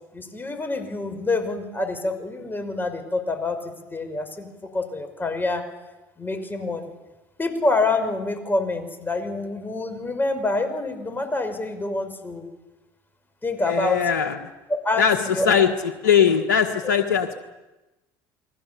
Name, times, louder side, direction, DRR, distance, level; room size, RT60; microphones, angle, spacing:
voice 1, 0.1-5.6 6.2-6.9 7.4-12.5 13.4-14.0 14.7-15.7 16.8-16.9, left 2 dB, 20° left, 8 dB, 5.4 m, -27 dB
voice 2, 13.6-14.3 15.0-15.2 15.4-15.7 16.0-17.4, left 7 dB, 90° left, 4 dB, 1.5 m, -20 dB
29.5 x 21.5 x 7.0 m, 1.1 s
hypercardioid pair, 75°, 10 cm